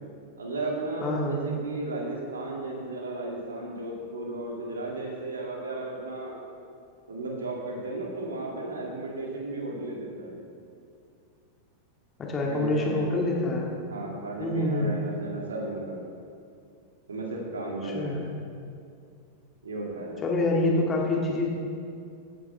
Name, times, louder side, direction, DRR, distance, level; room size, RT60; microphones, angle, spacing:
voice 1, 0.4-6.4 7.1-10.4 12.4-13.2 13.9-16.0 17.1-18.2 19.6-20.2, right 2 dB, 70° right, -1 dB, 2.3 m, -34 dB
voice 2, 1.0-1.4 12.2-13.7 14.4-14.9 17.8-18.3 20.2-21.5, left 2 dB, 25° left, -1 dB, 2.0 m, -26 dB
16.0 x 9.6 x 3.4 m, 2.4 s
figure-of-eight pair, 90°, 0 cm